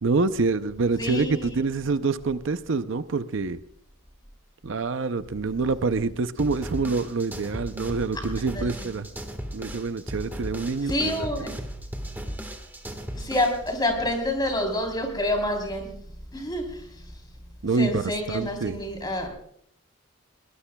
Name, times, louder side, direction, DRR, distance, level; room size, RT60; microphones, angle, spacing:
voice 1, 0.0-3.6 4.6-9.1 9.5-11.6 17.6-18.8, right 4 dB, 60° right, 12 dB, 0.5 m, -26 dB
voice 2, 1.0-1.5 8.5-8.9 10.8-11.5 13.1-15.9 16.3-16.9 17.8-19.3, left 1 dB, 20° left, 3 dB, 3.5 m, -28 dB
sound 1, 6.4-13.7, equal, 10° right, 1.4 m, -36 dB
21.5 x 20.0 x 2.3 m, 0.66 s
head